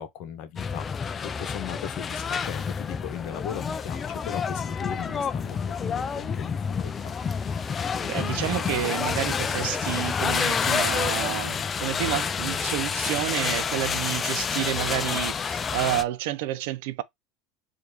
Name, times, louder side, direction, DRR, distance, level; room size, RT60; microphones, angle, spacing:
voice 1, 0.0-7.2, left 9 dB, 60° left, 1.0 m, -38 dB
sound 1, 0.6-16.0, left 6 dB, 30° left, 0.4 m, -28 dB
voice 2, 8.0-17.0, right 14 dB, 70° right, 0.5 m, -30 dB
4.7 x 2.7 x 2.8 m
hypercardioid pair, 85°, 0 cm